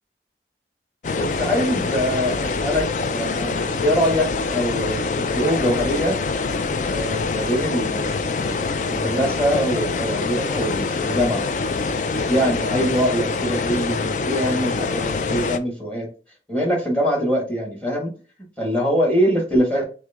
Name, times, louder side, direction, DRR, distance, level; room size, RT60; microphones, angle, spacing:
sound 1, 1.0-15.6, left 4 dB, 45° left, 0.4 m, -25 dB
voice 1, 1.1-2.9 3.1-6.2 6.9-11.5 12.3-16.1 16.5-18.1 18.6-19.8, equal, 5° left, 0 dB, 1.4 m, -23 dB
6.1 x 2.1 x 3.5 m, 0.37 s
head